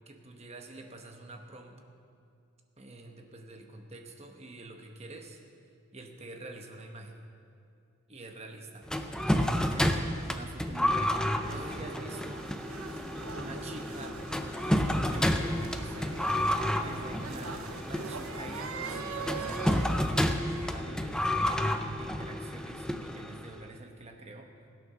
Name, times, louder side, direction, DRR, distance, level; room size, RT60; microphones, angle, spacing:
voice 1, 0.1-1.8 2.8-5.4 5.9-7.2 8.1-12.6 12.9-14.2 14.7-20.0 20.5-24.5, right 2 dB, 30° right, 4 dB, 1.0 m, -47 dB
sound 1, 8.9-23.6, left 1 dB, 5° left, 0.5 m, -30 dB
sound 2, 11.4-20.0, right 5 dB, 80° right, 0.8 m, -42 dB
16.5 x 8.6 x 6.1 m, 2.4 s
head